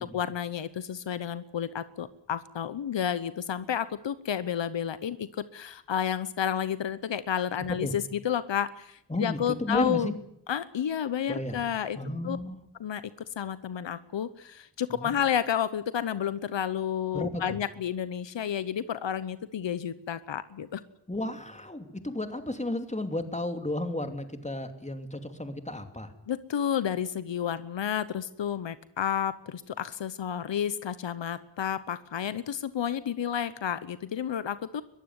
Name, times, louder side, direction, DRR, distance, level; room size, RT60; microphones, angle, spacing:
voice 1, 0.0-10.1 10.5-12.0 12.2-12.4 12.8-20.8 26.3-34.8, left 9 dB, 85° left, 15 dB, 1.0 m, -31 dB
voice 2, 9.1-10.1 11.3-11.6 11.9-12.6 14.9-15.1 17.1-17.6 21.1-26.1, left 1 dB, 15° left, 7 dB, 2.8 m, -33 dB
22.0 x 15.0 x 9.6 m, 0.76 s
cardioid pair, 60°, 43 cm